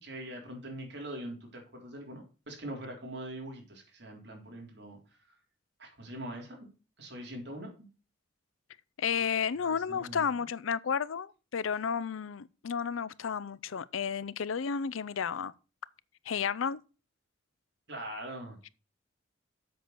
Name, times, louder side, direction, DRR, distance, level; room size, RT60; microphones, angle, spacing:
voice 1, 0.0-5.4 5.8-6.7 7.0-7.9 9.6-10.2 17.9-18.7, right 1 dB, 60° right, 3.7 m, -43 dB
voice 2, 9.0-15.5 16.3-16.8, left 6 dB, 90° left, 0.5 m, -32 dB
7.8 x 6.2 x 6.5 m
head